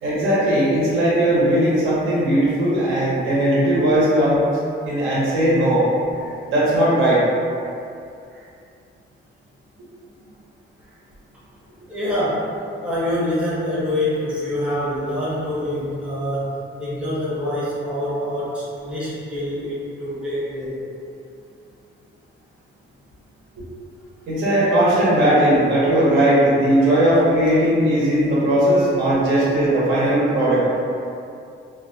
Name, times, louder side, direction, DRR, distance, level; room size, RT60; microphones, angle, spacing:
voice 1, 0.0-4.4 4.8-5.8 6.5-7.2 24.3-30.7, right 1 dB, 85° right, -8 dB, 0.8 m, -18 dB
voice 2, 11.9-12.5 12.8-20.8, left 1 dB, 5° right, -10 dB, 0.5 m, -25 dB
2.4 x 2.1 x 2.5 m, 2.5 s
cardioid pair, 165°, 20 cm